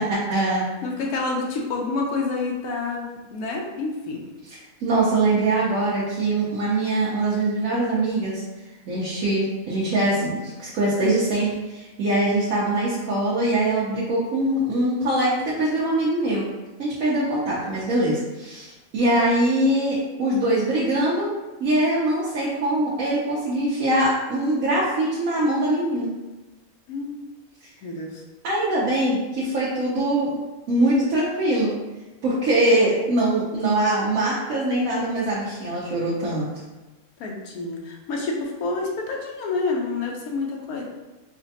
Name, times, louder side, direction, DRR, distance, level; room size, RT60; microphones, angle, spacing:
voice 1, 0.0-0.7 4.8-8.4 8.9-16.4 16.8-21.3 21.6-26.1 28.4-30.4 30.7-31.7 32.2-36.5, right 1 dB, 70° right, -7 dB, 1.1 m, -22 dB
voice 2, 0.8-4.2 19.0-19.1 26.9-27.1 27.8-28.2 37.2-40.8, left 3 dB, 90° left, -1 dB, 1.1 m, -28 dB
4.8 x 2.2 x 2.7 m, 1.1 s
omnidirectional pair, 1.5 m